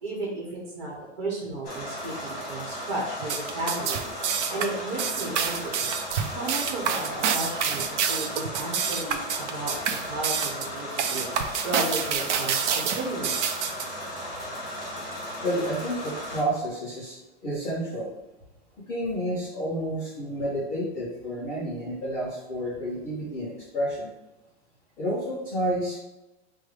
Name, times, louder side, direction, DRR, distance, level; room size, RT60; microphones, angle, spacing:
voice 1, 0.0-4.1 4.5-5.9 6.3-7.8 8.1-11.3 11.6-13.3, right 2 dB, 40° right, -3 dB, 1.2 m, -34 dB
sound 1, 1.6-16.4, equal, 25° left, 1.5 m, -36 dB
sound 2, 3.2-13.9, right 7 dB, 85° right, 0.6 m, -27 dB
voice 2, 15.4-18.1 18.9-24.1 25.0-26.0, equal, 5° left, -11 dB, 0.3 m, -30 dB
4.7 x 2.3 x 4.6 m, 0.99 s
supercardioid pair, 175°, 34 cm